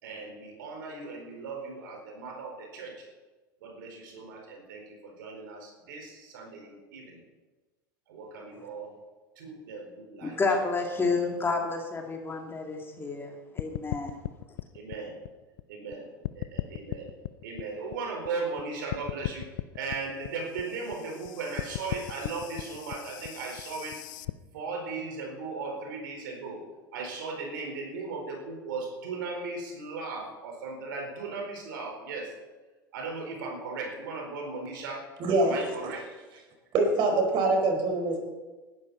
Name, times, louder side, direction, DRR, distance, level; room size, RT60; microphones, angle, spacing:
voice 1, 0.0-3.1 3.6-7.2 8.1-8.9 9.4-10.4 14.7-15.2 15.7-16.1 16.3-17.1 17.4-24.0 24.5-26.6 26.9-32.3 32.9-35.0 35.4-36.0, right 4 dB, 70° right, 4.5 m, -37 dB
voice 2, 10.2-14.2, left 3 dB, 20° left, 2.7 m, -30 dB
sound 1, 13.6-15.9 16.2-18.6 18.9-24.3, left 17 dB, 65° left, 0.6 m, -37 dB
voice 3, 35.2-35.6 36.7-38.2, right 2 dB, 45° right, 4.8 m, -24 dB
19.5 x 12.0 x 4.2 m
hypercardioid pair, 85°, 11 cm